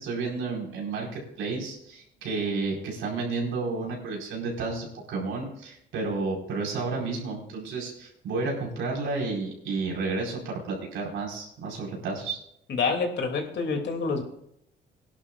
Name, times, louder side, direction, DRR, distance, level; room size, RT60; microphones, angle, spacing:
voice 1, 0.0-12.4, right 3 dB, 85° right, -1 dB, 4.8 m, -31 dB
voice 2, 12.7-14.2, left 4 dB, 60° left, 3 dB, 2.8 m, -27 dB
19.5 x 11.0 x 2.5 m, 0.76 s
cardioid pair, 90°, 20 cm